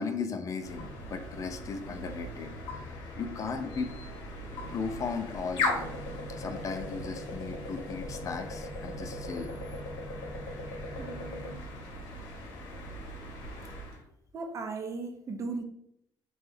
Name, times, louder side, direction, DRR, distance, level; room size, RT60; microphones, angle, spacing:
voice 1, 0.0-3.9 4.7-5.9 6.3-9.5, left 5 dB, 40° left, 6 dB, 0.4 m, -36 dB
sound 1, 0.6-14.0, left 2 dB, 80° left, 0.8 m, -38 dB
voice 2, 11.0-11.7 14.3-15.6, right 3 dB, 40° right, 6 dB, 0.5 m, -37 dB
3.0 x 2.3 x 3.2 m, 0.75 s
cardioid pair, 110°, 8 cm